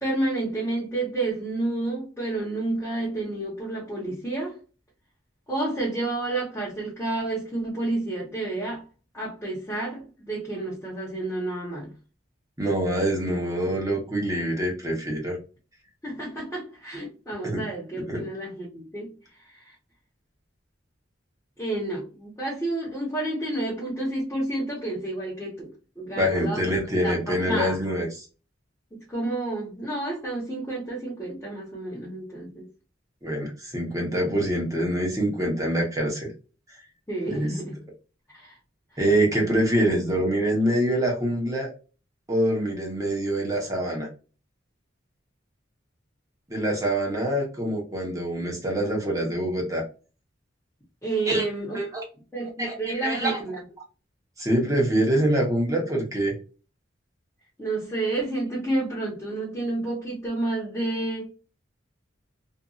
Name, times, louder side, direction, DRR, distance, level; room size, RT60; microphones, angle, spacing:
voice 1, 0.0-4.6 5.5-8.8 9.1-11.9 16.0-19.1 19.4-19.7 21.6-26.6 27.0-27.8 28.9-32.7 37.1-37.8 38.3-38.6 38.9-39.0 51.0-51.8 52.3-53.6 57.6-61.3, right 2 dB, 10° left, -7 dB, 0.9 m, -30 dB
voice 2, 12.6-15.4 17.4-17.6 18.0-18.2 26.1-28.3 33.2-36.3 37.2-37.5 39.0-41.7 42.3-44.1 46.5-49.8 51.3-51.4 51.7-52.0 52.6-53.4 54.4-56.3, right 1 dB, 15° right, -1 dB, 1.0 m, -25 dB
2.7 x 2.5 x 2.3 m, 0.33 s
head